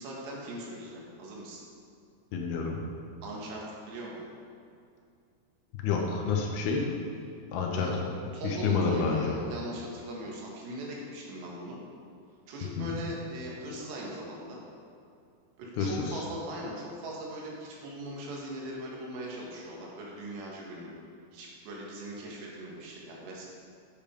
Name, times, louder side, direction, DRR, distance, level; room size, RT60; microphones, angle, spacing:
voice 1, 0.0-1.6 3.2-4.3 7.7-8.0 8.3-11.8 12.5-14.6 15.6-21.0 21.3-23.4, right 1 dB, 85° right, -3 dB, 3.7 m, -40 dB
voice 2, 2.3-2.8 5.8-6.9 7.5-7.9 8.4-9.3 12.8-12.9 15.8-16.0, left 5 dB, 75° left, 0 dB, 2.7 m, -28 dB
8.6 x 7.3 x 5.2 m, 2.4 s
omnidirectional pair, 4.9 m